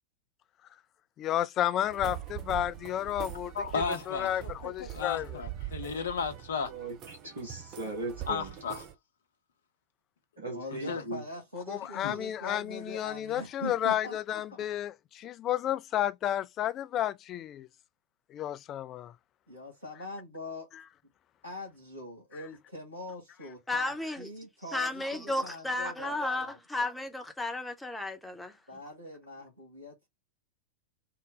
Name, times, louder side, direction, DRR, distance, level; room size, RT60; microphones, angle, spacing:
voice 1, 1.2-3.5 4.1-5.3 11.7-17.7 18.3-19.1, left 11 dB, 30° left, 0.3 m, -31 dB
sound 1, 1.8-8.9, right 12 dB, 35° right, 0.6 m, -43 dB
voice 2, 3.5-6.7 8.3-8.8 10.7-11.0 11.9-12.2, left 5 dB, 65° left, 0.8 m, -34 dB
voice 3, 6.7-8.5 10.4-11.2, right 2 dB, 70° right, 1.1 m, -38 dB
voice 4, 10.5-14.4 19.5-20.7 21.4-26.6 28.7-30.1, left 1 dB, 85° right, 1.8 m, -43 dB
voice 5, 23.7-24.3 24.7-28.6, left 2 dB, 5° left, 0.9 m, -33 dB
3.8 x 2.1 x 3.8 m
figure-of-eight pair, 90°, 0 cm